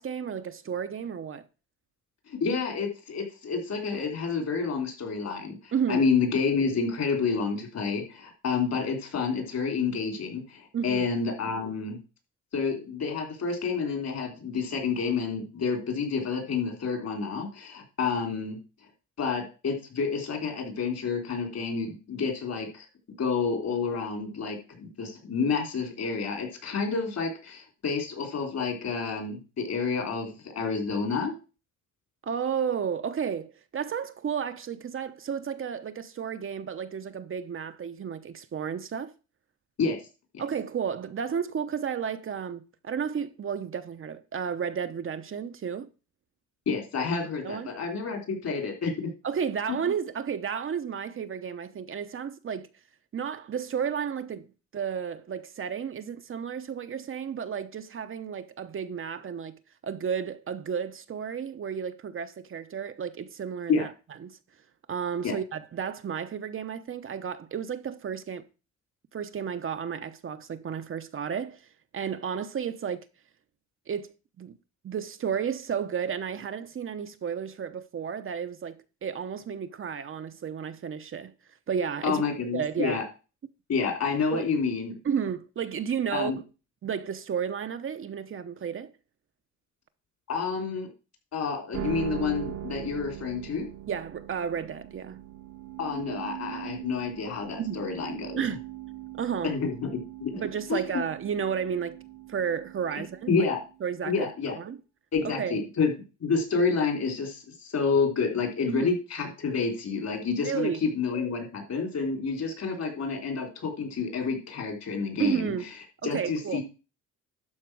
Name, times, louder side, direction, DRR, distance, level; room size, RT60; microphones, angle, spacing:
voice 1, 0.0-1.4 5.7-6.1 10.7-11.0 32.2-39.1 40.4-45.9 47.4-47.7 49.2-52.7 53.1-63.9 64.2-64.4 64.9-68.4 69.1-71.6 71.9-73.0 73.9-74.6 74.8-81.3 81.7-82.2 82.5-83.0 84.3-84.5 85.0-86.3 86.8-88.9 93.9-95.2 97.6-97.8 98.4-98.6 99.2-99.6 100.3-102.0 102.3-103.5 103.8-104.3 104.6-104.8 105.2-105.6 108.7-108.9 110.4-110.8 115.2-115.6 116.0-116.6, right 7 dB, 45° right, 0.8 m, -32 dB
voice 2, 2.3-12.0 12.5-18.6 19.2-22.9 23.2-31.3 39.8-40.0 40.3-40.4 46.7-49.1 49.7-49.8 63.7-63.8 65.2-65.3 82.0-83.0 83.7-85.0 86.1-86.4 90.3-90.9 91.3-93.7 95.8-98.4 99.4-99.9 100.2-100.4 100.7-100.8 103.3-103.6 104.1-104.6 105.1-105.9 106.2-115.5 116.0-116.6, left 5 dB, 60° left, 3.7 m, -29 dB
sound 1, 91.7-104.0, right 12 dB, 60° right, 1.1 m, -40 dB
12.0 x 4.2 x 6.2 m
cardioid pair, 90°, 30 cm